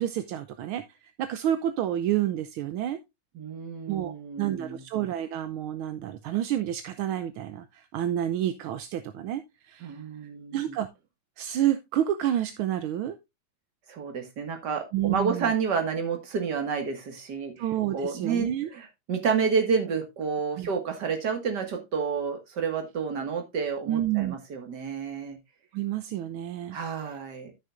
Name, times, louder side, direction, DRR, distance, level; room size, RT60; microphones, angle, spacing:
voice 1, 0.0-3.0 3.9-10.0 10.5-10.9 11.4-13.2 14.9-15.5 17.6-18.7 20.6-20.7 23.9-24.4 25.7-26.8, right 11 dB, 80° right, 10 dB, 1.5 m, -29 dB
voice 2, 3.3-4.8 9.8-10.8 13.9-17.5 17.9-25.4 26.7-27.5, right 6 dB, 55° right, 5 dB, 2.4 m, -30 dB
13.5 x 6.4 x 2.5 m, 0.21 s
omnidirectional pair, 2.3 m